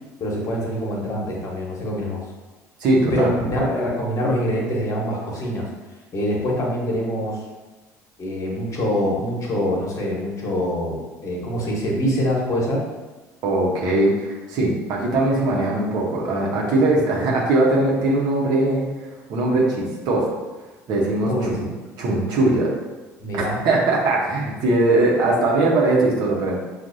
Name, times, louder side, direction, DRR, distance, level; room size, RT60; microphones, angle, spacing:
voice 1, 0.2-2.2 3.1-5.7 6.1-7.4 8.2-11.0 11.2-12.8 21.3-21.6 23.2-23.6, equal, 40° left, -2 dB, 1.2 m, -24 dB
voice 2, 2.8-3.3 13.4-20.3 20.9-21.7 22.0-22.7 23.3-26.6, right 2 dB, 60° right, -3 dB, 1.1 m, -20 dB
6.0 x 2.5 x 2.7 m, 1.2 s
hypercardioid pair, 65°, 8 cm